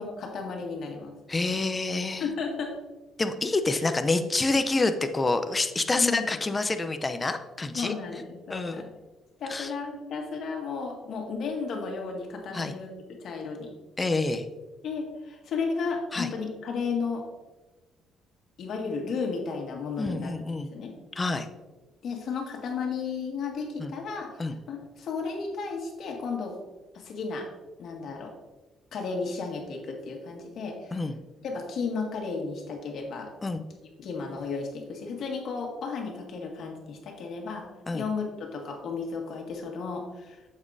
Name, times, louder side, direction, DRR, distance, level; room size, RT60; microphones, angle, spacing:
voice 1, 0.0-1.1 2.2-2.7 3.7-3.8 6.0-6.3 7.7-8.9 9.4-13.7 14.8-17.2 18.6-20.3 20.7-20.9 22.0-24.4 24.7-26.6 26.9-27.5 27.8-28.3 28.9-31.0 31.4-33.3 34.0-37.6 37.9-40.4, left 4 dB, 60° left, 1 dB, 1.8 m, -33 dB
voice 2, 1.3-2.2 3.2-7.9 8.5-8.8 9.5-9.7 12.5-12.7 14.0-14.5 16.1-16.3 20.0-20.7 21.2-21.5 23.8-23.9 24.4-24.6 30.9-31.2 33.4-33.6 37.9-38.1, left 3 dB, 20° left, 9 dB, 0.6 m, -27 dB
8.3 x 7.3 x 2.7 m, 1.2 s
cardioid pair, 115°, 0 cm